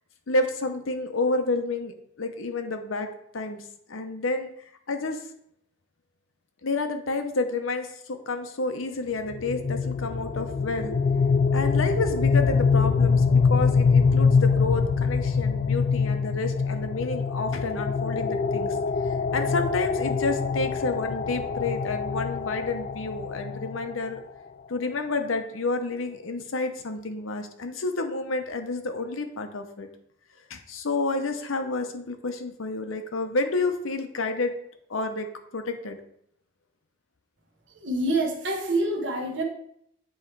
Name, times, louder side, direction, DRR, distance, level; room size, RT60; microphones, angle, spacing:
voice 1, 0.3-3.1 3.3-4.5 4.9-5.2 6.6-10.9 11.5-18.8 19.1-24.2 24.7-29.9 30.5-34.5 34.9-35.3 35.5-36.0, left 3 dB, 85° left, 6 dB, 0.8 m, -29 dB
sound 1, 9.3-24.2, left 5 dB, 45° left, 0.3 m, -24 dB
voice 2, 37.7-39.4, right 2 dB, 65° right, 1 dB, 1.2 m, -26 dB
8.0 x 3.1 x 4.6 m, 0.71 s
head